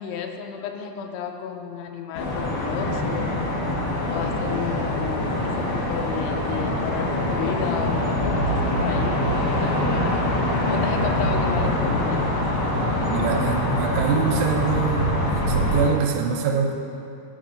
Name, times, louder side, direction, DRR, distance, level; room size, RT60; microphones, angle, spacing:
voice 1, 0.0-3.3 4.0-10.2 10.7-12.5 13.0-13.1, left 7 dB, 85° left, 4 dB, 2.9 m, -33 dB
sound 1, 2.1-15.9, left 1 dB, 70° left, 1.4 m, -24 dB
voice 2, 13.1-16.7, right 6 dB, 90° right, 2 dB, 2.9 m, -24 dB
11.0 x 5.0 x 5.3 m, 2.6 s
omnidirectional pair, 5.2 m